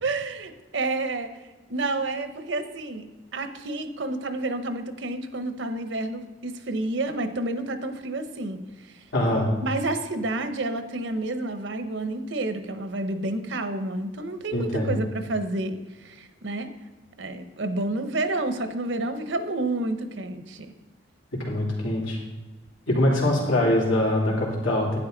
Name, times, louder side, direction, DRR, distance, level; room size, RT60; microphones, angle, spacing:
voice 1, 0.0-1.3 1.7-3.1 3.3-8.6 8.9-9.0 9.6-16.7 17.2-20.7, right 2 dB, 70° right, 9 dB, 0.9 m, -29 dB
voice 2, 9.1-9.5 14.5-15.0 21.4-22.2 22.9-25.0, left 1 dB, 85° left, -3 dB, 3.2 m, -23 dB
11.5 x 9.5 x 4.0 m, 1.2 s
head